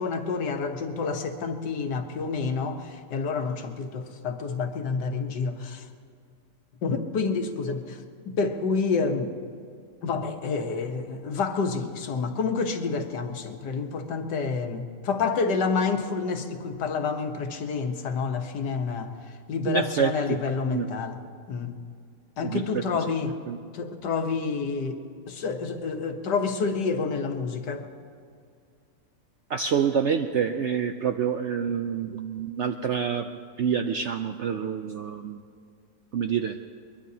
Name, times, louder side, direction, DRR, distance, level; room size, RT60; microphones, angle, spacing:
voice 1, 0.0-5.9 6.8-8.0 8.3-9.3 10.0-19.1 19.5-21.2 21.5-21.8 22.4-23.4 23.7-25.0 25.3-27.8, left 4 dB, 90° left, 6 dB, 1.7 m, -28 dB
voice 2, 19.7-20.4 20.7-20.9 22.4-22.6 23.5-23.6 29.5-33.3 33.6-35.4 36.1-36.6, right 7 dB, 70° right, 6 dB, 0.6 m, -27 dB
22.5 x 21.5 x 2.8 m, 2.2 s
omnidirectional pair, 1.8 m